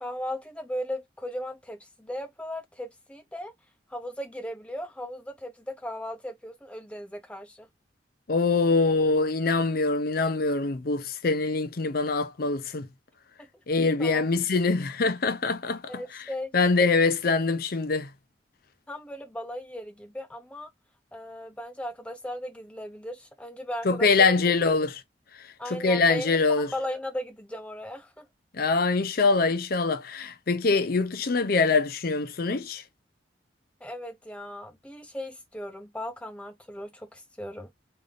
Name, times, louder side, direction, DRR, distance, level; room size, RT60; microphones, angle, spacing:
voice 1, 0.0-3.5 3.9-7.7 14.0-14.2 15.9-16.5 18.9-20.7 21.1-24.4 25.6-28.2 33.8-37.7, left 1 dB, 5° left, 0.6 m, -37 dB
voice 2, 8.3-12.9 13.7-16.0 16.5-18.1 23.8-25.0 25.7-26.7 28.5-32.8, left 4 dB, 55° left, 0.6 m, -24 dB
3.3 x 2.6 x 3.8 m
head